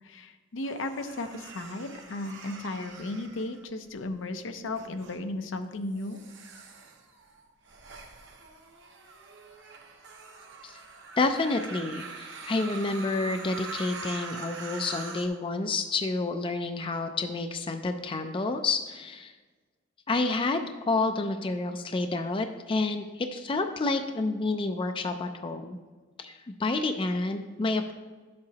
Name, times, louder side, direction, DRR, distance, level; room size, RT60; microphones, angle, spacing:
voice 1, 0.0-6.2, left 2 dB, 70° left, 8 dB, 0.6 m, -35 dB
sound 1, 0.6-4.1 4.7-5.2 5.9-15.3, right 3 dB, 65° right, 1.1 m, -44 dB
voice 2, 11.2-19.3 20.1-25.8 26.2-27.9, left 3 dB, 25° left, 7 dB, 0.4 m, -29 dB
11.0 x 7.6 x 2.8 m, 1.3 s
head